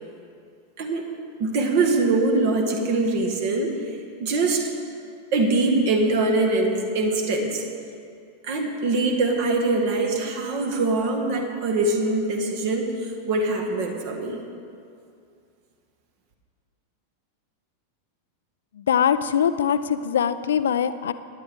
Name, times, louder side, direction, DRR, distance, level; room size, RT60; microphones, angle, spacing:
voice 1, 0.8-1.1 1.4-3.8 4.2-4.7 5.3-7.6 8.4-14.4, right 2 dB, 50° right, 4 dB, 1.7 m, -23 dB
voice 2, 18.9-21.1, left 8 dB, 65° left, 13 dB, 0.5 m, -22 dB
18.5 x 10.5 x 3.7 m, 2.4 s
figure-of-eight pair, 90°, 0 cm